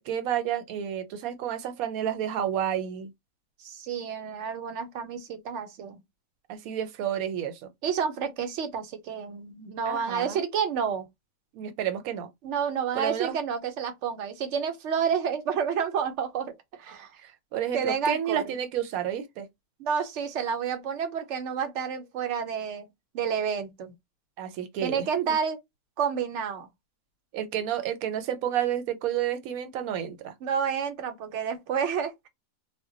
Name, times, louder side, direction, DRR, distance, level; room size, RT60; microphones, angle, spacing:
voice 1, 0.0-3.1 6.5-7.7 9.8-10.4 11.5-12.3 12.9-13.3 17.2-19.5 24.4-25.4 27.3-30.3, right 10 dB, 85° right, 1.1 m, -30 dB
voice 2, 3.6-6.0 7.8-11.0 12.4-16.5 16.8-17.1 17.7-18.5 19.8-22.9 23.1-23.9 24.8-25.6 26.0-26.7 30.4-32.3, right 7 dB, 65° right, 0.9 m, -30 dB
2.2 x 2.1 x 3.7 m
omnidirectional pair, 1.5 m